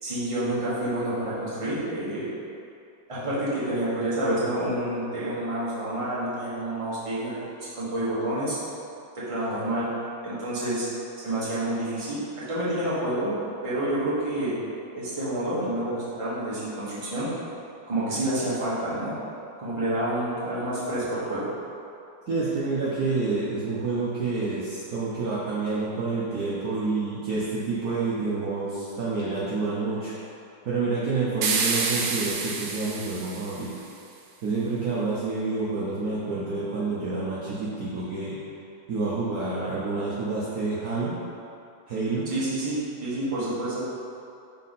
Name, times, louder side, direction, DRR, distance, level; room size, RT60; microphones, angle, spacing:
voice 1, 0.0-2.3 3.1-7.3 7.6-8.5 9.1-9.9 10.2-10.8 11.2-13.4 13.6-14.5 14.9-17.3 17.9-19.1 19.6-21.5 42.3-43.8, right 1 dB, 20° right, -10 dB, 1.3 m, -28 dB
voice 2, 22.3-30.1 30.6-33.7 34.4-38.4 38.9-41.2 41.9-42.3, right 3 dB, 60° right, -8 dB, 1.1 m, -28 dB
sound 1, 31.4-33.8, right 4 dB, 85° right, 1.4 m, -28 dB
5.8 x 4.2 x 4.1 m, 2.6 s
omnidirectional pair, 2.0 m